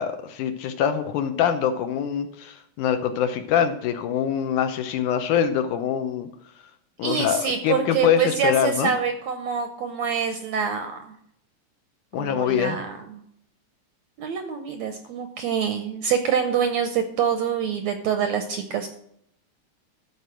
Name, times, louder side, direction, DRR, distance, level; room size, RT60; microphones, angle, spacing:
voice 1, 0.0-6.3 7.0-8.9 12.1-12.8, left 8 dB, 75° left, 8 dB, 2.1 m, -24 dB
voice 2, 7.0-11.2 12.2-13.2 14.2-18.9, right 7 dB, 75° right, 7 dB, 1.7 m, -26 dB
13.5 x 4.6 x 7.6 m, 0.70 s
omnidirectional pair, 4.0 m